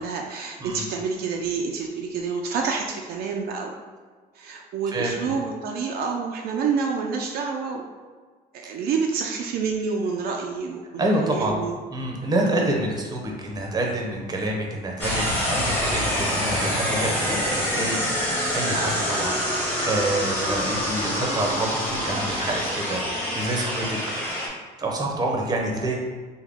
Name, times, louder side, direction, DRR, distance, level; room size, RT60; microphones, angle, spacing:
voice 1, 0.0-3.7 4.3-7.9 8.5-11.8, right 5 dB, 65° right, 1 dB, 0.4 m, -28 dB
voice 2, 11.0-11.6 11.9-24.1 24.8-26.0, right 1 dB, 25° right, 0 dB, 0.7 m, -27 dB
sound 1, 15.0-24.5, equal, 10° left, 1.1 m, -26 dB
3.6 x 2.2 x 3.5 m, 1.5 s
cardioid pair, 110°, 17 cm